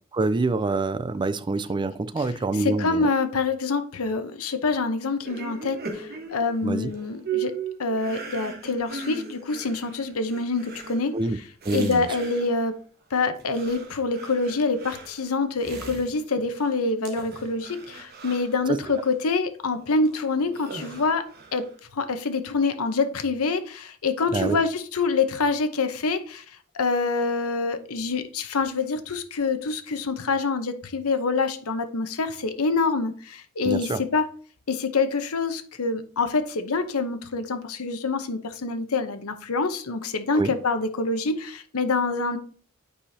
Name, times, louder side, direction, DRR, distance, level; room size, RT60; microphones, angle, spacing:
voice 1, 0.1-3.1 6.6-6.9 11.1-11.4 11.6-12.1 18.7-18.8 24.3-24.6 33.6-34.0 40.3-40.5, right 3 dB, 20° right, 0.3 m, -26 dB
voice 2, 2.6-11.2 11.7-12.7 13.1-21.3 21.5-26.4 26.7-34.3 34.7-42.4, left 4 dB, 80° left, 0.8 m, -26 dB
sound 1, 5.2-12.8 13.2-16.8 17.0-19.1 19.7-21.8, right 6 dB, 45° right, 1.2 m, -39 dB
8.7 x 4.9 x 2.7 m
head